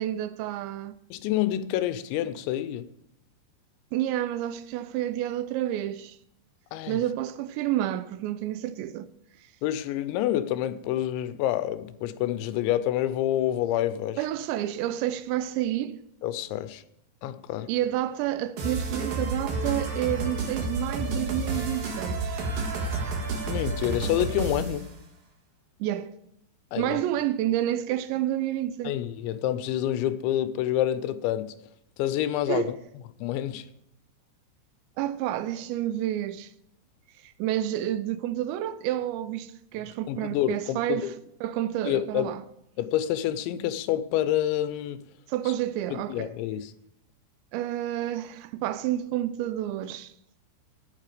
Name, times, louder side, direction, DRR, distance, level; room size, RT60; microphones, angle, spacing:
voice 1, 0.0-0.9 3.9-6.2 6.9-9.1 14.2-16.0 17.7-22.4 25.8-26.1 26.8-28.9 32.5-32.7 35.0-36.5 37.2-41.1 41.4-42.4 45.3-46.3 47.5-50.1, right 12 dB, 85° right, 2.8 m, -29 dB
voice 2, 1.1-2.9 6.7-7.0 9.6-14.2 16.2-16.8 17.2-17.7 22.8-23.0 23.5-24.9 26.7-27.0 28.8-31.5 32.0-32.8 33.2-33.7 40.1-41.1 41.9-42.4 42.8-45.0 45.9-46.7, left 12 dB, 85° left, 3.0 m, -28 dB
sound 1, 18.6-24.9, right 3 dB, 55° right, 3.3 m, -30 dB
14.0 x 9.6 x 5.0 m
omnidirectional pair, 5.2 m